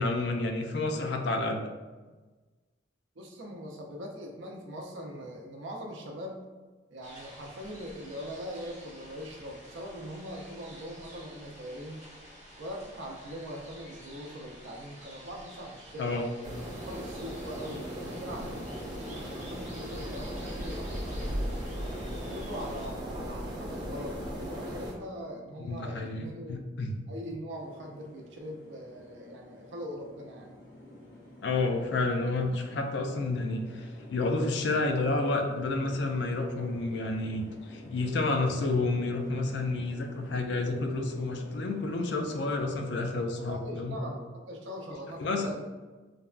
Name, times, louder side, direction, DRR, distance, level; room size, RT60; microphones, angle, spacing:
voice 1, 0.0-1.6 16.0-16.3 25.6-27.0 31.4-44.0 45.2-45.5, left 2 dB, 65° left, 4 dB, 0.4 m, -30 dB
voice 2, 3.2-6.5 6.9-12.1 12.6-16.2 16.9-21.5 22.3-26.6 27.1-30.5 43.4-45.7, equal, 80° right, 1 dB, 0.5 m, -42 dB
sound 1, 7.0-22.9, equal, 40° right, 0.9 m, -50 dB
sound 2, 16.4-24.9, equal, 25° right, 0.5 m, -37 dB
sound 3, 27.5-43.1, left 1 dB, 85° left, 0.9 m, -50 dB
3.3 x 2.2 x 2.4 m, 1.3 s
head